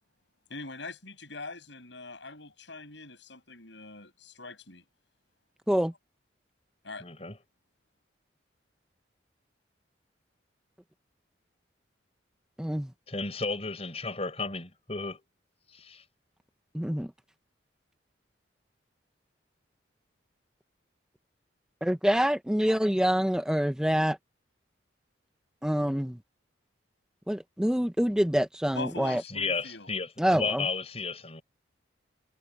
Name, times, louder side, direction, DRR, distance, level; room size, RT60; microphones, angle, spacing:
voice 1, 0.5-4.8 6.8-7.0 28.7-29.9, left 3 dB, 65° left, 8.0 m, -42 dB
voice 2, 7.0-7.4 13.1-15.2 15.7-16.0 29.3-31.4, left 4 dB, 30° left, 5.1 m, -33 dB
voice 3, 12.6-12.9 16.7-17.1 21.8-24.2 25.6-26.2 27.3-29.2 30.2-30.6, equal, 5° right, 0.5 m, -26 dB
head